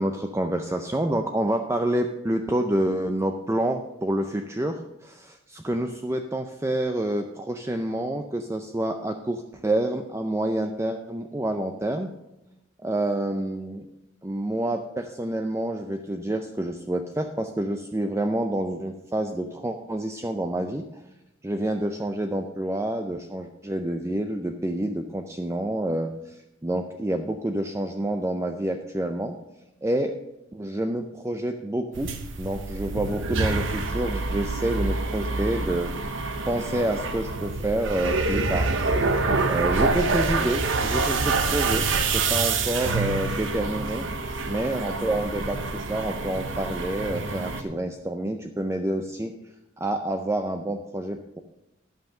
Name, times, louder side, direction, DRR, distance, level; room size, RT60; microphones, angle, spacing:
voice 1, 0.0-12.1 12.8-13.9 14.2-21.0 21.4-29.4 29.8-30.1 30.5-32.1 32.4-35.9 36.5-38.7 39.5-44.1 44.5-49.3 49.8-51.4, right 1 dB, 15° right, 5 dB, 0.4 m, -28 dB
sound 1, 31.9-47.6, right 3 dB, 75° right, 1.0 m, -27 dB
11.5 x 5.7 x 6.5 m, 0.91 s
head